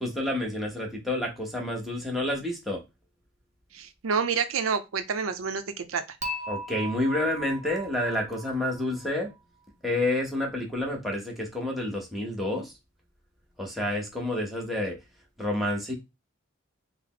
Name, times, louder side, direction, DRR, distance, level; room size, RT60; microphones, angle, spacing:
voice 1, 0.0-2.8 6.5-9.3 9.8-12.7 13.6-15.0 15.4-15.9, left 1 dB, ahead, 0.8 m, -29 dB
voice 2, 3.7-5.6 5.9-6.0, right 6 dB, 80° right, 0.5 m, -28 dB
Dishes pots and pans / Chink clink, 6.2-9.4, right 1 dB, 35° right, 0.6 m, -38 dB
3.4 x 2.0 x 3.7 m
head